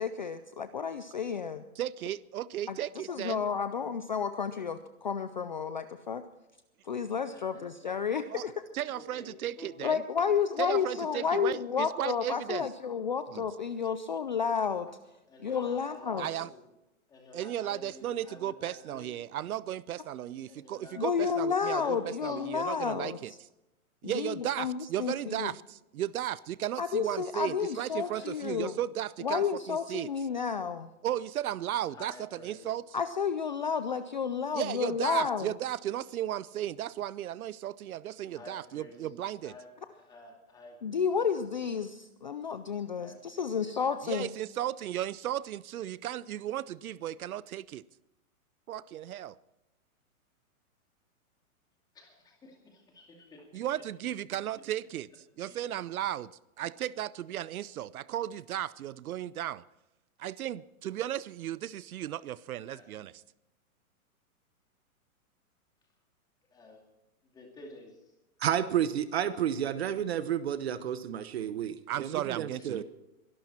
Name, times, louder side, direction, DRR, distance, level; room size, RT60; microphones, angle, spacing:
voice 1, 0.0-1.6 2.7-2.8 3.1-6.2 6.8-8.5 9.8-14.9 15.4-16.3 21.0-23.2 24.0-25.5 26.8-28.7 29.2-30.9 32.9-35.5 40.8-44.3, left 6 dB, 35° left, 0.4 m, -31 dB
voice 2, 1.8-3.4 8.3-8.4 8.7-10.0 10.6-12.7 13.3-13.5 16.2-16.5 17.3-21.8 22.2-23.3 24.0-30.1 31.0-32.8 34.5-39.5 44.0-47.8 48.7-49.4 53.5-55.1 55.4-56.3 56.6-59.6 60.2-63.1 71.9-72.8, right 12 dB, 75° right, 0.7 m, -35 dB
voice 3, 7.3-7.9 8.9-9.9 10.8-11.6 14.9-15.0 15.3-16.6 17.1-19.2 20.5-22.9 27.6-28.4 31.9-32.7 38.3-39.1 39.4-41.0 43.0-43.7 51.9-53.6 55.4-55.6 62.7-62.9 66.5-66.9 67.3-68.1 72.5-72.7, left 2 dB, 10° left, 2.3 m, -51 dB
voice 4, 68.4-72.8, right 10 dB, 45° right, 0.9 m, -31 dB
23.0 x 12.0 x 4.3 m
hypercardioid pair, 170°, 44 cm